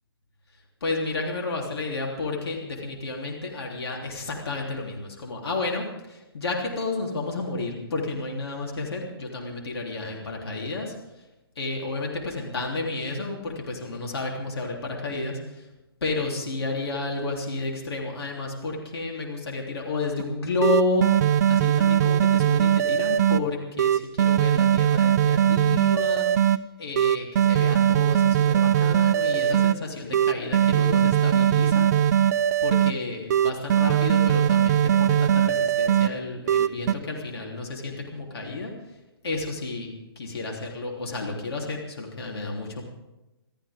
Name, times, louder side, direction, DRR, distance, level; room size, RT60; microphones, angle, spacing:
voice 1, 0.8-10.9 11.6-15.7 16.0-31.9 32.2-32.3 32.6-38.7 39.2-42.8, left 3 dB, 75° left, -1 dB, 3.6 m, -31 dB
sound 1, 20.2-20.3 20.6-23.4 23.8-26.6 27.0-29.7 30.1-32.9 33.3-36.1 36.5-36.9, right 9 dB, 40° right, 0.7 m, -20 dB
27.0 x 14.0 x 3.7 m, 1.0 s
hypercardioid pair, 145°, 13 cm